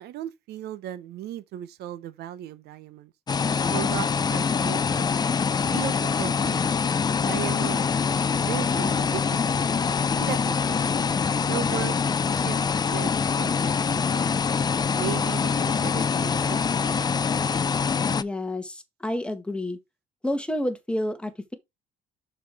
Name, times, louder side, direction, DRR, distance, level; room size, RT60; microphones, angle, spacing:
voice 1, 0.0-3.1 3.7-5.2 5.7-6.6 7.2-7.9 8.4-9.6 10.2-10.9 11.4-11.9 12.3-12.6 12.9-14.4 14.9-17.0, right 12 dB, 75° right, 0.9 m, -36 dB
sound 1, 3.3-18.2, left 5 dB, 25° left, 0.5 m, -24 dB
voice 2, 18.1-19.8 20.2-21.5, left 1 dB, 5° left, 1.6 m, -29 dB
6.8 x 6.6 x 3.5 m
cardioid pair, 110°, 17 cm